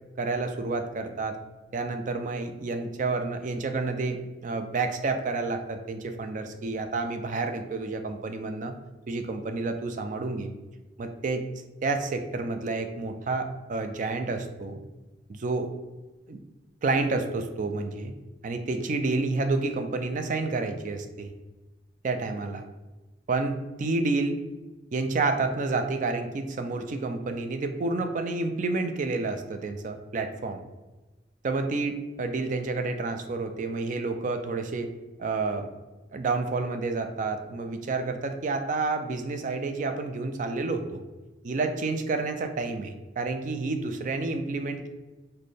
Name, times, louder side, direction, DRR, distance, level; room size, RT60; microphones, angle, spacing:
voice 1, 0.2-1.4 1.7-8.7 9.1-10.5 11.0-11.4 11.8-14.8 15.3-15.7 16.3-16.4 16.8-18.1 18.4-21.3 22.0-22.6 23.3-24.4 24.9-30.6 31.4-34.9 35.2-35.7 36.1-41.0 41.4-44.9, right 3 dB, 45° right, 6 dB, 0.4 m, -29 dB
4.1 x 2.2 x 3.3 m, 1.1 s
head